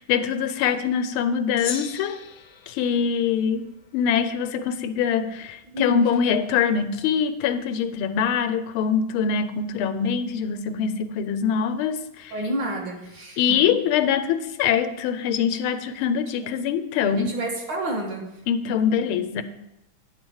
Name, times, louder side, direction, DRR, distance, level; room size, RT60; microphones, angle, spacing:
voice 1, 0.0-2.2 2.7-3.6 3.9-12.3 13.4-17.3 18.5-19.4, left 7 dB, 90° left, 11 dB, 1.5 m, -24 dB
Gong, 1.6-4.2, left 6 dB, 70° left, 0.8 m, -38 dB
voice 2, 5.7-6.1 12.3-13.8 17.1-18.3 18.7-18.8, right 1 dB, 60° right, -1 dB, 2.2 m, -30 dB
9.7 x 4.0 x 6.2 m, 0.87 s
omnidirectional pair, 2.3 m